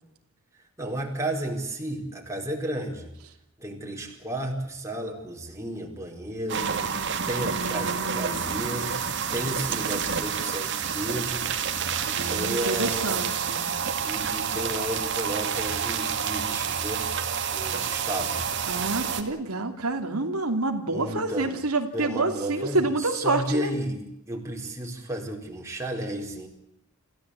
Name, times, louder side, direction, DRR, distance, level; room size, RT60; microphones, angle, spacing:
voice 1, 0.8-3.1 3.6-6.7 7.3-9.0 9.3-11.5 12.0-13.2 14.0-17.0 17.5-18.4 20.9-21.6 21.9-26.5, right 1 dB, 15° right, 0 dB, 4.6 m, -33 dB
sound 1, 6.5-19.2, right 7 dB, 55° right, 2.4 m, -29 dB
voice 2, 7.4-8.5 12.1-13.6 18.7-23.7, right 2 dB, 90° right, 4 dB, 2.8 m, -28 dB
27.5 x 16.0 x 8.5 m, 0.81 s
head